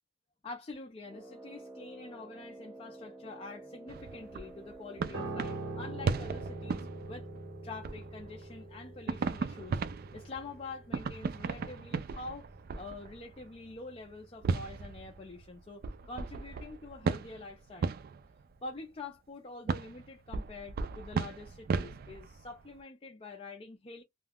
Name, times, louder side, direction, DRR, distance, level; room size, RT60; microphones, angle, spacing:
voice 1, 0.4-7.3 7.6-9.8 10.1-12.5 12.7-18.0 18.6-24.0, left 3 dB, 30° left, 0.5 m, -46 dB
Brass instrument, 1.0-6.6, right 2 dB, 10° right, 0.7 m, -50 dB
sound 1, 3.9-7.5 7.8-8.6 9.1-13.5 14.4-18.5 19.7-22.8, right 4 dB, 50° right, 0.3 m, -36 dB
Piano, 5.1-14.5 14.8-15.0, right 2 dB, 75° right, 0.7 m, -44 dB
2.3 x 2.2 x 3.4 m
head